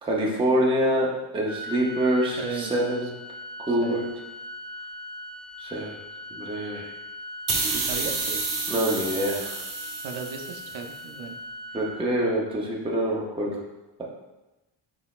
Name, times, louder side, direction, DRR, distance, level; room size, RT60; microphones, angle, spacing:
voice 1, 0.0-3.1 3.6-4.0 5.6-6.0 6.3-6.9 8.7-9.6 11.7-13.6, right 1 dB, 10° right, -3 dB, 0.5 m, -25 dB
Organ, 1.5-12.5, left 1 dB, 25° left, 1.2 m, -40 dB
voice 2, 2.4-2.7 3.0-3.1 3.7-4.0 7.7-8.4 10.0-11.4, right 5 dB, 70° right, 4 dB, 0.6 m, -36 dB
sound 1, 7.5-10.9, right 3 dB, 40° right, 0.8 m, -30 dB
4.9 x 3.8 x 2.3 m, 1.0 s
wide cardioid pair, 175°, 48 cm